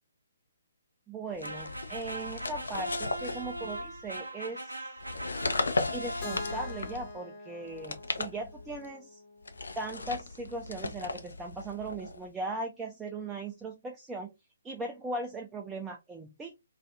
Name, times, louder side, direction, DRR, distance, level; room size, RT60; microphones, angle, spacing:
voice 1, 1.1-4.9 5.9-9.2 9.8-14.3 14.6-16.6, right 2 dB, 10° right, 0.4 m, -38 dB
sound 1, 1.4-4.1 5.0-7.2 7.7-8.9 9.4-12.3, left 3 dB, 70° left, 0.4 m, -36 dB
sound 2, 1.4-6.9, right 1 dB, 90° right, 0.5 m, -40 dB
Keyboard (musical), 6.2-10.1, left 3 dB, 35° left, 0.8 m, -45 dB
2.4 x 2.3 x 2.6 m
figure-of-eight pair, 135°, 0 cm